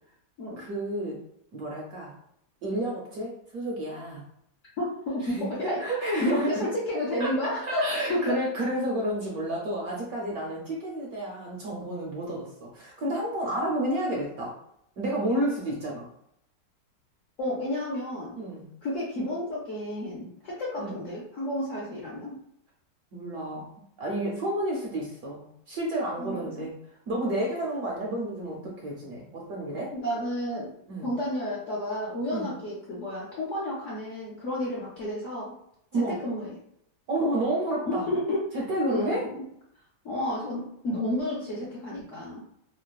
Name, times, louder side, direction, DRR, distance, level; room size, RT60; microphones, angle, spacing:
voice 1, 0.6-1.2 1.5-2.1 2.6-4.2 5.2-6.7 7.2-7.3 7.7-14.5 15.0-16.0 18.4-18.7 20.8-21.0 23.1-23.7 24.0-26.8 27.1-29.9 30.9-31.1 32.3-32.5 35.9-36.2 37.1-38.1 38.5-39.3, right 1 dB, 70° right, -2 dB, 0.9 m, -30 dB
voice 2, 4.8-5.9 6.2-8.4 17.4-18.4 18.8-22.4 26.2-26.6 29.9-30.8 31.0-35.6 36.1-36.6 37.8-38.5 38.9-39.4 40.0-42.4, left 1 dB, 70° left, -6 dB, 0.7 m, -31 dB
3.0 x 2.0 x 2.2 m, 0.74 s
omnidirectional pair, 1.9 m